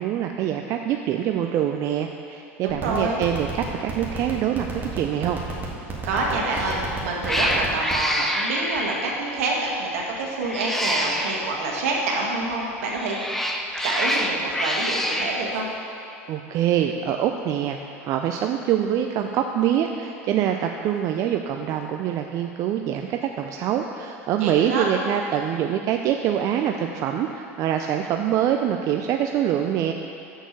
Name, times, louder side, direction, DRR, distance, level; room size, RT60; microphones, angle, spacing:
voice 1, 0.0-5.4 16.3-29.9, right 10 dB, 50° right, 4 dB, 0.4 m, -25 dB
voice 2, 2.6-3.2 6.0-13.2 13.8-15.7 24.4-24.9, right 3 dB, 75° right, -2 dB, 1.6 m, -27 dB
sound 1, 2.7-8.1, right 3 dB, 25° right, 1.9 m, -31 dB
Cat, 6.5-6.8 7.2-9.3 10.4-11.5 12.8-15.4, equal, 5° left, 0.7 m, -26 dB
6.6 x 6.1 x 6.7 m, 2.8 s
hypercardioid pair, 95°, 8 cm